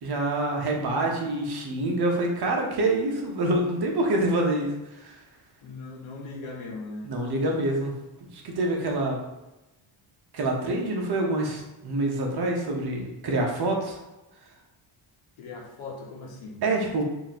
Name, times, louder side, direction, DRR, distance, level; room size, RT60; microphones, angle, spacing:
voice 1, 0.0-5.2 7.0-7.9 8.3-9.2 10.3-14.0 16.6-17.0, right 2 dB, 50° right, 0 dB, 1.1 m, -26 dB
voice 2, 5.6-7.1 15.4-16.6, left 3 dB, 80° left, -1 dB, 1.2 m, -39 dB
3.0 x 2.9 x 4.1 m, 0.99 s
cardioid pair, 105°, 48 cm